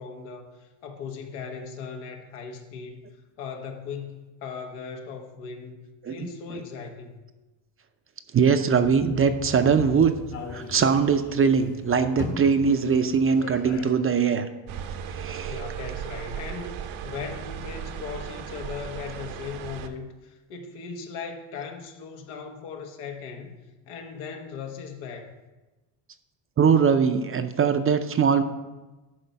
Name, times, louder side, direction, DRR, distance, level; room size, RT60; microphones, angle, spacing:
voice 1, 0.0-3.0 3.4-7.2 15.5-16.7 17.0-23.6 23.8-25.3, left 6 dB, 90° left, 4 dB, 1.4 m, -38 dB
voice 2, 8.3-10.1 10.5-14.5 15.1-15.6 26.6-28.4, right 6 dB, 25° right, 9 dB, 0.5 m, -21 dB
sound 1, 8.8-13.8, left 5 dB, 60° left, 1.8 m, -38 dB
sound 2, 14.7-19.9, right 8 dB, 70° right, 0.9 m, -36 dB
11.0 x 4.4 x 5.7 m, 1.1 s
cardioid pair, 110°, 50 cm